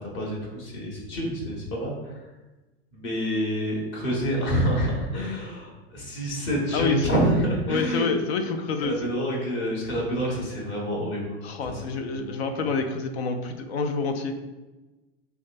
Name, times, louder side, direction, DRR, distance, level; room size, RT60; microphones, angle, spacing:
voice 1, 0.0-2.1 2.9-8.1 8.8-11.4 11.6-11.8 12.1-12.3, equal, 50° left, -2 dB, 1.5 m, -27 dB
voice 2, 6.7-7.1 7.7-8.9 11.4-14.3, left 4 dB, 85° left, 7 dB, 0.5 m, -27 dB
5.1 x 2.3 x 2.5 m, 1.1 s
hypercardioid pair, 110°, 31 cm